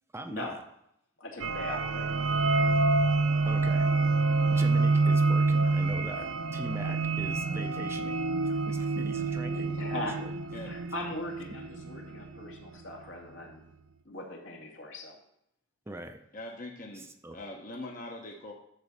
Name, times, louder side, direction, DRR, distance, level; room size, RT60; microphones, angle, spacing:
voice 1, 0.1-0.6 3.5-3.9 4.5-10.3 15.9-16.2 17.2-17.4, right 1 dB, 10° right, 6 dB, 0.6 m, -41 dB
voice 2, 1.2-2.1 6.7-6.8 9.7-10.2 10.6-13.6 14.1-15.2, left 1 dB, 70° left, -1 dB, 2.4 m, -39 dB
sound 1, 1.4-12.7, right 3 dB, 75° right, 0.7 m, -27 dB
voice 3, 16.3-18.5, left 1 dB, 40° left, 0 dB, 1.1 m, -42 dB
12.0 x 4.0 x 7.3 m, 0.76 s
head